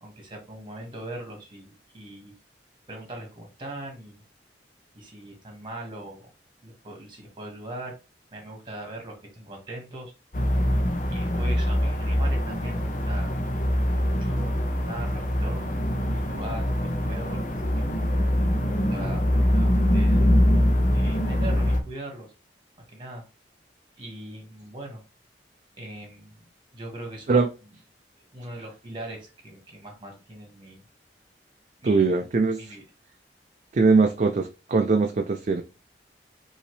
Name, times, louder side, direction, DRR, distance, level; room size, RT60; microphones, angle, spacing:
voice 1, 0.0-2.3 2.9-4.2 4.9-6.3 6.6-8.0 8.3-10.1 11.1-13.4 13.7-15.7 16.1-17.4 17.7-17.9 18.6-20.3 20.9-22.3 22.9-23.2 24.0-25.0 25.8-26.4 26.7-27.4 28.3-30.8 31.8-32.1 32.6-32.8, right 1 dB, 30° right, 1.7 m, -40 dB
sound 1, 10.3-21.8, equal, 45° left, 0.9 m, -23 dB
voice 2, 31.8-32.7 33.7-35.6, right 4 dB, 45° right, 0.4 m, -21 dB
5.5 x 2.8 x 3.2 m
head